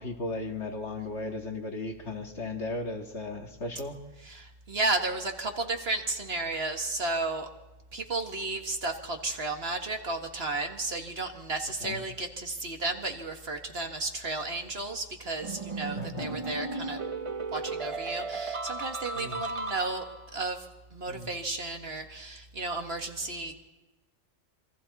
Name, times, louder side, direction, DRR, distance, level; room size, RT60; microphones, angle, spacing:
voice 1, 0.0-4.0 11.8-12.0 15.9-16.4 19.1-19.4 21.1-21.3, left 2 dB, 60° left, 2 dB, 2.4 m, -36 dB
voice 2, 4.3-7.5 7.9-17.0 17.5-20.0 20.3-20.6 20.9-23.5, right 3 dB, 50° right, 4 dB, 1.9 m, -33 dB
sound 1, 15.4-20.3, right 3 dB, 30° right, 0.8 m, -35 dB
27.5 x 23.5 x 4.2 m, 1.1 s
omnidirectional pair, 1.3 m